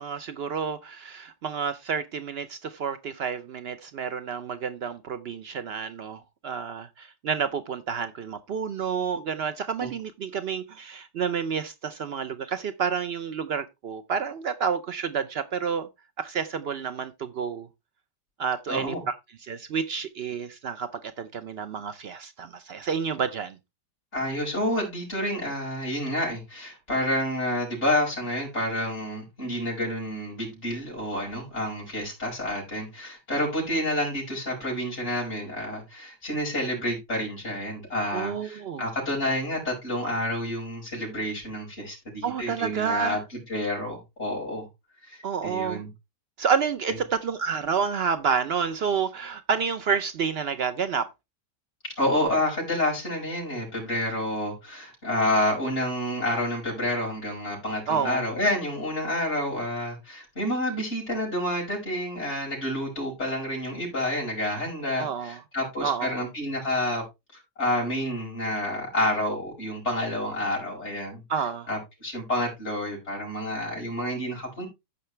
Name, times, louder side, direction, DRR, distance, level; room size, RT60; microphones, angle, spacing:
voice 1, 0.0-15.9 16.2-17.7 18.4-19.1 19.4-23.6 38.1-38.9 42.2-43.2 45.2-45.8 46.4-51.1 57.9-58.3 65.0-65.4 65.8-66.2 71.3-71.7, right 6 dB, 80° right, 0.5 m, -29 dB
voice 2, 18.7-19.0 24.1-43.2 43.5-44.7 45.0-45.9 46.9-47.0 52.0-67.0 67.6-71.2 71.7-74.7, left 1 dB, 40° left, 6.3 m, -29 dB
15.0 x 5.7 x 3.2 m
omnidirectional pair, 1.8 m